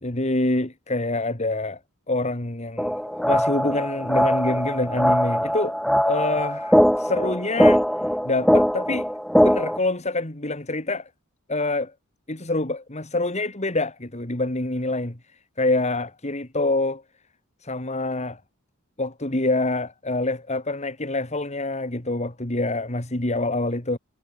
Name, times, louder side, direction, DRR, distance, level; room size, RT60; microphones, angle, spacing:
voice 1, 0.0-1.8 2.1-5.8 6.1-7.8 8.2-9.1 9.4-11.1 11.5-11.9 12.3-15.2 15.6-17.0 17.6-18.4 19.0-24.0, left 2 dB, 35° left, 2.6 m, -26 dB
sound 1, 2.8-9.8, equal, ahead, 1.5 m, -21 dB
head